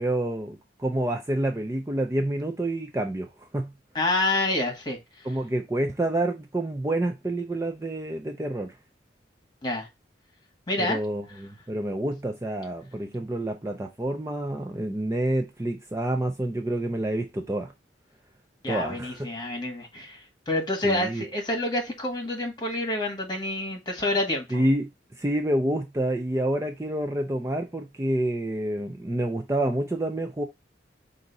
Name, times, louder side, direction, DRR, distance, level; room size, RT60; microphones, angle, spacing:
voice 1, 0.0-3.7 5.2-8.8 10.8-17.7 18.7-19.2 20.8-21.2 24.5-24.9 25.2-30.4, right 1 dB, 15° right, 0.4 m, -28 dB
voice 2, 3.9-5.0 9.6-9.9 10.7-11.0 18.6-24.6, left 2 dB, 25° left, 1.5 m, -28 dB
5.1 x 2.6 x 3.9 m
head